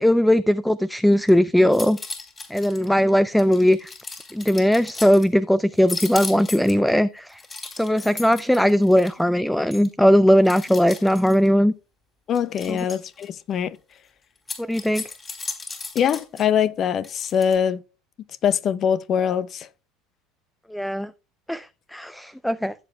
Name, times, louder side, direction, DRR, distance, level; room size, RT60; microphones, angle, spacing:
voice 1, 0.0-2.0 2.5-3.9 4.3-7.4 7.7-11.7 12.7-12.8 14.6-15.0 20.7-21.1 21.5-22.7, equal, 5° left, 0.4 m, -19 dB
sound 1, 1.1-1.3 1.6-2.9 3.4-5.3 5.8-6.9 7.3-9.2 9.7-9.9 10.4-11.5 12.3-13.3 14.4-16.4 17.0-17.6, left 3 dB, 25° left, 3.7 m, -36 dB
voice 2, 12.3-13.8 15.9-17.8 18.4-19.7, left 8 dB, 45° left, 0.6 m, -23 dB
15.5 x 7.7 x 2.3 m
hypercardioid pair, 70°, 0 cm